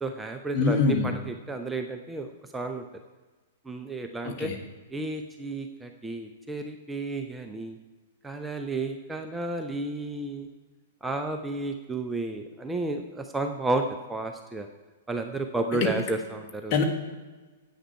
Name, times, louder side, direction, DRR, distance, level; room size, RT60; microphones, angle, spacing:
voice 1, 0.0-2.3 2.5-2.8 3.7-4.5 4.9-7.8 8.2-10.5 11.0-14.7 15.1-16.8, right 2 dB, 10° right, 5 dB, 0.6 m, -32 dB
voice 2, 0.5-1.1 4.2-4.6 15.8-15.9 16.7-16.8, left 5 dB, 35° left, 3 dB, 1.5 m, -24 dB
10.0 x 8.5 x 4.6 m, 1.3 s
figure-of-eight pair, 105°, 0 cm